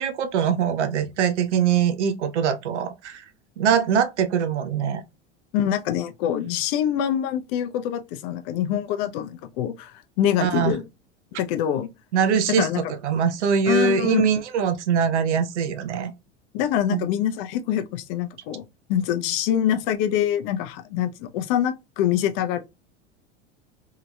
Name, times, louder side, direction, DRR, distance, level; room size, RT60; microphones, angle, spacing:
voice 1, 0.0-3.2 3.6-5.0 10.4-10.8 12.1-16.1 16.9-17.0, right 7 dB, 75° right, 0.6 m, -22 dB
voice 2, 5.5-10.8 11.4-11.9 12.5-12.8 13.7-14.2 16.5-18.6 18.9-22.6, left 10 dB, 50° left, 0.5 m, -25 dB
2.8 x 2.8 x 2.2 m
hypercardioid pair, 85°, 35 cm